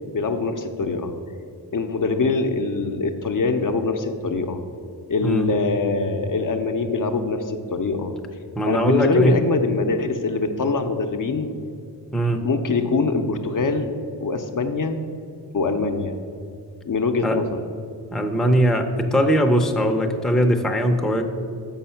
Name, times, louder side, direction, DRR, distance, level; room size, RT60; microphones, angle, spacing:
voice 1, 0.1-1.1 1.7-4.6 5.1-8.1 8.6-11.5 12.4-13.9 14.2-15.0 15.5-16.2 16.8-17.5, left 4 dB, 50° left, 5 dB, 0.6 m, -23 dB
voice 2, 5.2-5.5 8.5-9.4 12.1-12.4 17.2-17.4 18.1-21.2, equal, ahead, 3 dB, 0.5 m, -20 dB
6.9 x 5.6 x 5.6 m, 2.5 s
cardioid pair, 80°, 42 cm